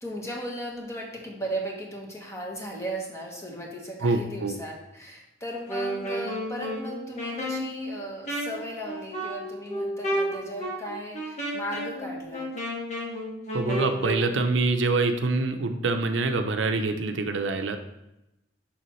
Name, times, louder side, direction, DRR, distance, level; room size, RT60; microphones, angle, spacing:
voice 1, 0.0-12.5, right 1 dB, 15° left, -1 dB, 1.3 m, -36 dB
voice 2, 4.0-4.5 13.5-17.8, right 3 dB, 80° right, 6 dB, 0.6 m, -25 dB
Wind instrument woodwind instrument, 5.6-14.3, equal, 40° left, 1.5 m, -32 dB
6.8 x 5.7 x 3.1 m, 0.90 s
head